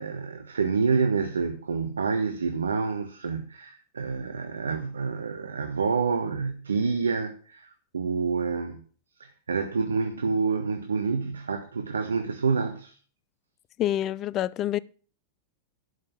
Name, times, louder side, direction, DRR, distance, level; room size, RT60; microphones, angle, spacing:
voice 1, 0.0-8.8 9.2-12.9, right 5 dB, 80° right, 1.0 m, -28 dB
voice 2, 13.8-14.8, left 12 dB, 35° left, 0.5 m, -27 dB
11.5 x 5.5 x 7.0 m
hypercardioid pair, 100°, 0 cm